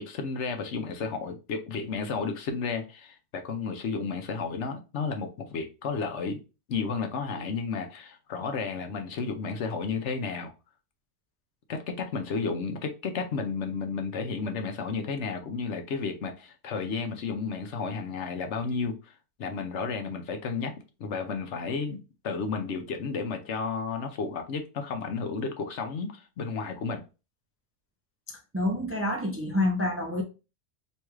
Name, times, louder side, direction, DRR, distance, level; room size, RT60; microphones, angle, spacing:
voice 1, 0.0-6.4 6.7-10.5 11.7-19.1 19.4-20.7 21.0-27.0, left 5 dB, 70° left, 1.0 m, -32 dB
voice 2, 28.3-30.2, left 1 dB, 15° right, 0.5 m, -28 dB
4.6 x 3.1 x 2.3 m
omnidirectional pair, 1.3 m